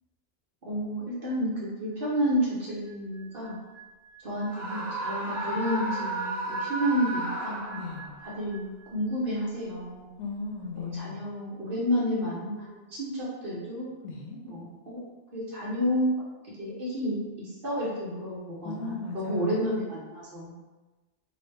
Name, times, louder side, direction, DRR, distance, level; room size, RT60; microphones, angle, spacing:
voice 1, 0.7-3.6 4.2-7.6 8.2-10.1 10.7-13.9 14.4-15.0 15.3-16.1 16.6-20.6, equal, 55° right, -6 dB, 1.0 m, -30 dB
sound 1, 2.8-9.1 9.4-9.7, right 6 dB, 50° left, 0.7 m, -47 dB
Screaming, 4.5-8.2, right 1 dB, 25° right, 0.6 m, -33 dB
voice 2, 7.7-8.1 10.2-11.2 14.0-14.4 18.6-19.6, left 4 dB, 85° left, -1 dB, 0.9 m, -37 dB
2.8 x 2.1 x 3.2 m, 1.2 s
omnidirectional pair, 1.2 m